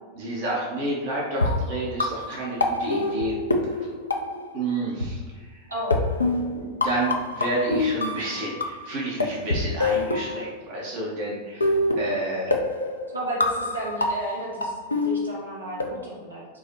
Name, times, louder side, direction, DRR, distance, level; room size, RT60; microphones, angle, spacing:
voice 1, 0.2-3.3 4.5-5.2 5.5-5.6 6.5-12.6, right 2 dB, 50° right, -4 dB, 0.8 m, -30 dB
sound 1, 1.3-4.7 5.0-5.1 5.9-8.9 9.2-10.9 11.6-15.8, left 2 dB, 75° left, 0.4 m, -26 dB
voice 2, 5.7-6.0 13.1-14.7 15.0-16.4, right 1 dB, 80° right, -5 dB, 0.9 m, -32 dB
4.6 x 2.1 x 2.8 m, 1.4 s
figure-of-eight pair, 90°, 0 cm